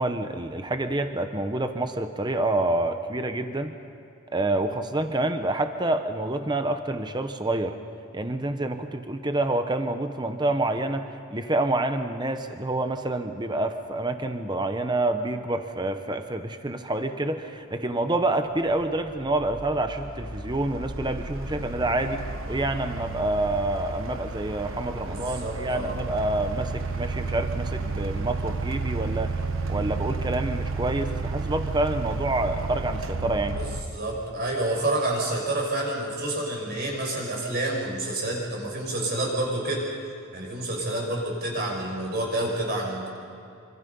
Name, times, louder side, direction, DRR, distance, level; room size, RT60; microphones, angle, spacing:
voice 1, 0.0-3.8 4.3-7.8 8.1-29.3 29.7-33.6, right 2 dB, 20° right, 8 dB, 0.9 m, -27 dB
sound 1, 18.0-18.1 18.7-33.8, right 3 dB, 60° right, 1.2 m, -32 dB
voice 2, 25.1-26.0 33.5-33.7 33.9-39.9 40.3-43.1, right 1 dB, 45° right, -1 dB, 6.0 m, -28 dB
26.5 x 25.5 x 5.5 m, 2.6 s
head